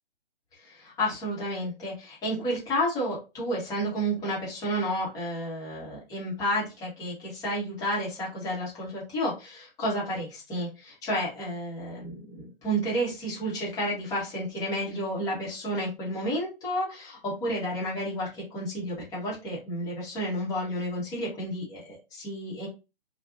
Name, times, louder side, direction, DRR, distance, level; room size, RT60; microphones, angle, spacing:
voice 1, 0.6-22.7, equal, 10° left, -6 dB, 1.2 m, -31 dB
3.3 x 2.5 x 2.5 m, 0.28 s
figure-of-eight pair, 130°, 30 cm